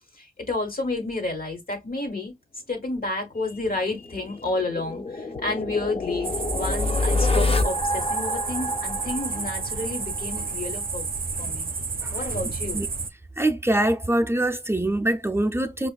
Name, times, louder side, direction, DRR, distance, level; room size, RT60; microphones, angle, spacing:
voice 1, 0.2-2.3 2.7-6.3 6.5-11.1 11.4-11.7 12.1-12.8, left 2 dB, 80° left, 1.2 m, -30 dB
sound 1, 3.6-10.5, left 2 dB, 40° left, 0.5 m, -27 dB
sound 2, 6.2-13.1, right 4 dB, 75° right, 0.4 m, -31 dB
voice 2, 13.4-15.9, right 1 dB, 15° right, 0.4 m, -23 dB
5.0 x 2.3 x 2.2 m
wide cardioid pair, 40°, 15 cm